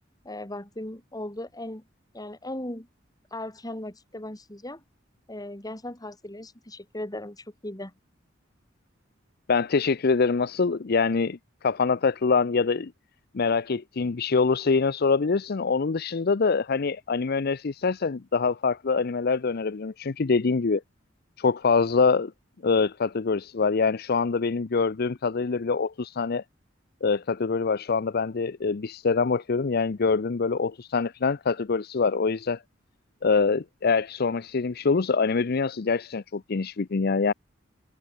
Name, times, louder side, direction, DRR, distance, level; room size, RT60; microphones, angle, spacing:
voice 1, 0.3-1.8 2.1-2.9 3.3-4.8 5.3-7.9, left 1 dB, 20° left, 3.4 m, -37 dB
voice 2, 9.5-11.4 11.6-12.9 13.3-20.8 21.4-22.3 22.6-26.4 27.0-32.6 33.2-37.3, left 4 dB, 55° left, 0.6 m, -24 dB
head